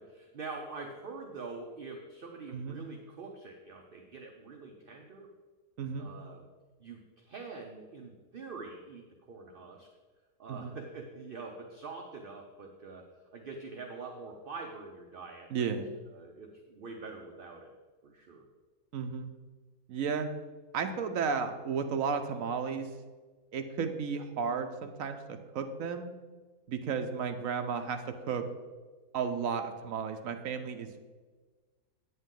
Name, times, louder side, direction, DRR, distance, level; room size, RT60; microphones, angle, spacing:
voice 1, 0.0-5.3 6.0-6.5 6.8-9.9 10.4-13.0 13.3-15.7 16.1-17.7 18.0-18.5, right 4 dB, 45° right, 2 dB, 0.8 m, -45 dB
voice 2, 2.5-2.8 5.8-6.1 10.5-10.8 15.5-16.0 18.9-19.3 19.9-20.3 20.7-22.9 23.5-26.1 26.7-28.0 28.3-28.4 29.1-30.9, right 6 dB, 70° right, 7 dB, 1.0 m, -33 dB
8.9 x 8.2 x 3.8 m, 1.4 s
omnidirectional pair, 1.6 m